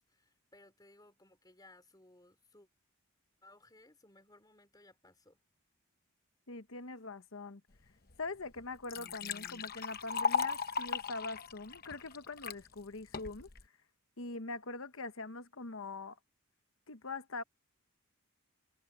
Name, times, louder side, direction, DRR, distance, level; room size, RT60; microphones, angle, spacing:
voice 1, 0.0-2.7 3.4-5.4, left 2 dB, 20° left, 4.0 m, -61 dB
voice 2, 6.5-7.6 8.2-13.5 14.2-16.2 16.9-17.4, left 3 dB, 65° left, 1.2 m, -43 dB
Liquid, 8.1-8.2 8.6-12.6 13.1-13.6, left 5 dB, 45° left, 0.9 m, -36 dB
head